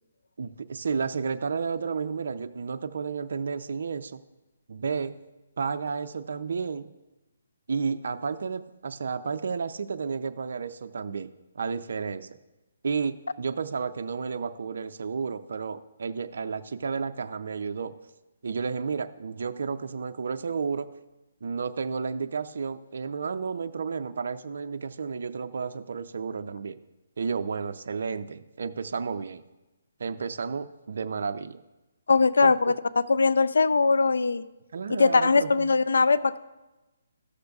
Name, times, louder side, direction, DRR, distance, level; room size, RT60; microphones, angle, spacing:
voice 1, 0.4-4.2 4.7-5.2 5.6-6.9 7.7-12.4 12.8-17.9 18.4-21.0 21.4-26.8 27.2-29.4 30.0-31.6 32.4-32.5 34.7-35.7, right 5 dB, 65° right, 9 dB, 0.4 m, -32 dB
voice 2, 32.1-34.4 34.9-36.4, left 4 dB, 85° left, 14 dB, 0.4 m, -21 dB
14.0 x 6.5 x 2.3 m, 1.1 s
hypercardioid pair, 160°, 0 cm